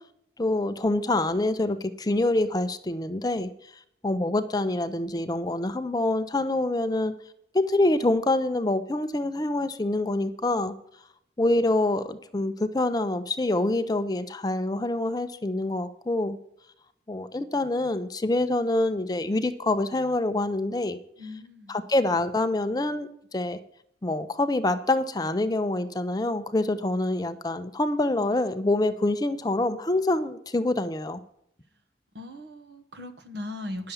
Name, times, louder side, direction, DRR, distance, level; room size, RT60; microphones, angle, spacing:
voice 1, 0.4-3.5 4.0-7.1 7.5-10.7 11.4-16.4 17.1-21.0 21.7-23.6 24.0-31.2, left 2 dB, 20° left, 11 dB, 0.5 m, -26 dB
voice 2, 21.2-21.8 32.1-33.9, left 1 dB, 70° right, 7 dB, 1.3 m, -38 dB
10.5 x 6.7 x 7.0 m, 0.73 s
head